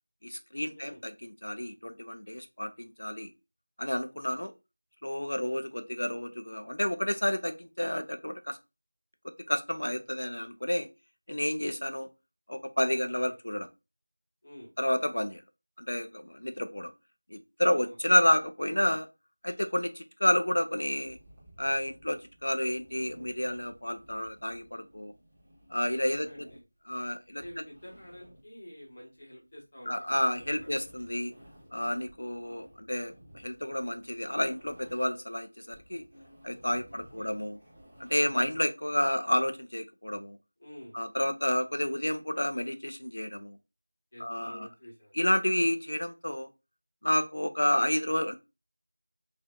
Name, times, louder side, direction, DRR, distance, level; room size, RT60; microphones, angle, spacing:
voice 1, 0.2-3.3 3.8-4.5 5.0-8.6 9.5-10.9 11.3-12.1 12.5-13.7 14.8-15.4 15.8-16.9 17.3-19.1 19.4-21.2 21.6-25.1 25.7-26.3 26.9-27.4 29.9-31.3 31.7-36.0 36.4-37.6 38.0-40.4 40.9-43.6 44.2-44.7 45.1-46.5 47.0-48.4, left 1 dB, 75° left, 8 dB, 0.6 m, -30 dB
voice 2, 12.9-13.3 14.4-14.7 17.8-18.0 26.0-26.6 27.3-30.8 36.9-37.3 40.6-41.0 44.1-45.1, equal, 25° left, -4 dB, 1.2 m, -49 dB
sound 1, 20.9-35.2 35.5-38.6, right 1 dB, 10° right, 0.7 m, -56 dB
4.3 x 2.6 x 2.2 m, 0.26 s
figure-of-eight pair, 180°, 0 cm